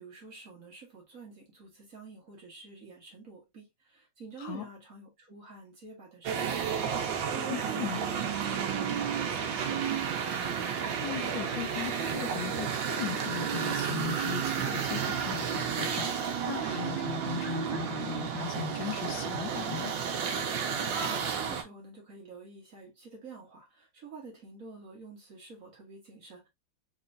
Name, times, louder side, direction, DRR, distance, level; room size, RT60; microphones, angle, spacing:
voice 1, 0.0-10.0 20.8-26.5, right 4 dB, 45° right, 1.4 m, -48 dB
sound 1, 6.2-21.6, right 7 dB, 70° right, 1.5 m, -32 dB
voice 2, 7.5-8.0 10.7-19.9, left 9 dB, 70° left, 1.3 m, -38 dB
4.2 x 3.1 x 2.4 m
omnidirectional pair, 2.3 m